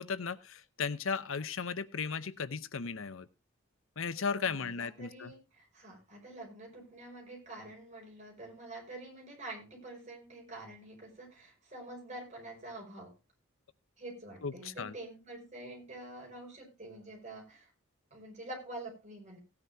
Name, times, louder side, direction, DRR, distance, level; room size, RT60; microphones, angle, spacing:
voice 1, 0.0-3.3 4.0-5.3 14.4-14.9, left 5 dB, 70° left, 14 dB, 0.8 m, -36 dB
voice 2, 4.4-13.1 14.0-17.7 18.1-19.4, right 2 dB, 35° right, 1 dB, 5.1 m, -47 dB
18.0 x 9.8 x 2.7 m, 0.27 s
head